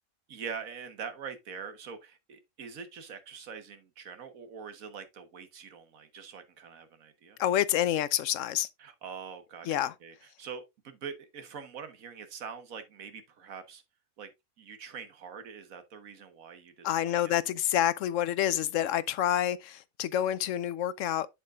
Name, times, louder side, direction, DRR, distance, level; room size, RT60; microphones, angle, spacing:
voice 1, 0.3-7.4 8.8-13.8 14.2-14.3 14.6-17.2, right 6 dB, 75° right, 1.6 m, -44 dB
voice 2, 7.4-8.7 9.7-9.9 16.8-21.3, left 11 dB, 70° left, 0.9 m, -28 dB
7.5 x 7.4 x 2.4 m
omnidirectional pair, 1.5 m